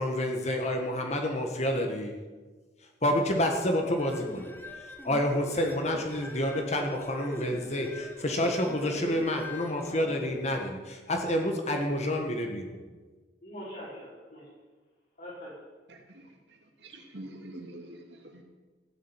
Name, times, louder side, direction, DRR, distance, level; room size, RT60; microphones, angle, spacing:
voice 1, 0.0-2.2 3.0-4.5 5.0-12.8, left 1 dB, 40° left, 3 dB, 1.6 m, -29 dB
sound 1, 3.8-10.6, left 1 dB, 10° left, 1.3 m, -44 dB
voice 2, 8.6-9.2 13.4-14.5 15.2-15.5, right 1 dB, 55° left, -8 dB, 5.5 m, -41 dB
voice 3, 15.9-16.2 16.8-18.4, right 1 dB, 80° right, 2 dB, 2.7 m, -45 dB
15.5 x 7.6 x 9.1 m, 1.3 s
head